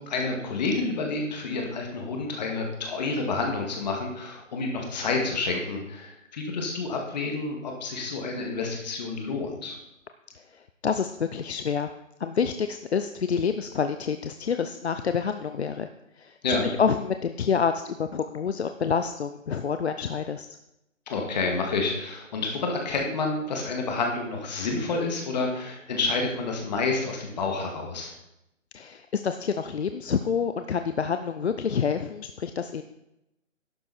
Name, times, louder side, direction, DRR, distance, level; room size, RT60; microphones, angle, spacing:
voice 1, 0.0-9.8 16.4-16.7 21.1-28.1, left 3 dB, 35° left, 2 dB, 2.3 m, -29 dB
voice 2, 10.3-11.9 12.2-15.9 16.2-20.5 28.7-32.8, left 6 dB, 55° left, 8 dB, 0.6 m, -28 dB
12.0 x 8.4 x 4.3 m, 0.85 s
figure-of-eight pair, 155°, 39 cm